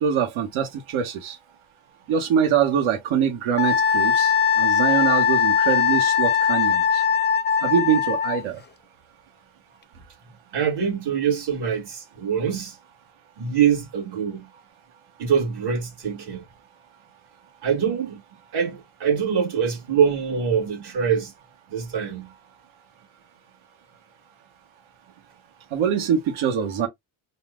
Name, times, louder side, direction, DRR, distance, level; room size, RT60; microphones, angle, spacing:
voice 1, 0.0-1.4 2.1-7.0 7.6-8.6 25.7-26.9, right 8 dB, 80° right, 1.3 m, -24 dB
Wind instrument woodwind instrument, 3.6-8.4, left 7 dB, 25° left, 0.4 m, -20 dB
voice 2, 10.3-12.8 13.4-14.5 15.2-16.5 17.6-18.2 18.5-21.3 21.7-22.3, right 7 dB, 55° right, 1.8 m, -24 dB
4.1 x 2.2 x 3.7 m
cardioid pair, 155°, 47 cm